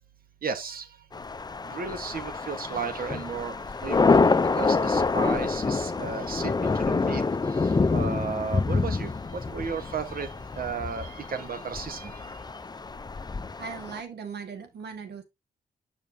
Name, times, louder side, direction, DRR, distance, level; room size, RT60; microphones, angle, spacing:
voice 1, 0.4-0.9 1.6-12.3, right 5 dB, 60° right, 1.2 m, -35 dB
sound 1, 1.1-14.0, left 4 dB, 25° left, 0.5 m, -27 dB
voice 2, 13.6-15.2, right 6 dB, 80° right, 1.6 m, -38 dB
7.3 x 6.1 x 2.7 m
cardioid pair, 70°, 17 cm